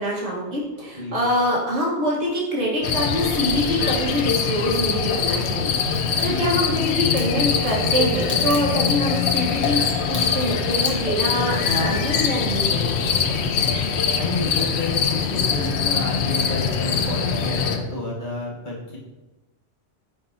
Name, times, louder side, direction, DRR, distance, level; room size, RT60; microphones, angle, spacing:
voice 1, 0.0-13.8, equal, 65° right, -4 dB, 1.8 m, -25 dB
sound 1, 2.8-17.8, left 6 dB, 70° left, 0.8 m, -23 dB
Crack, 5.8-6.2 7.2-13.4 13.7-14.4 14.7-14.8, equal, 10° right, 1.1 m, -40 dB
voice 2, 14.2-19.0, left 2 dB, 40° left, -5 dB, 1.4 m, -30 dB
8.9 x 4.3 x 2.8 m, 1.1 s
omnidirectional pair, 1.3 m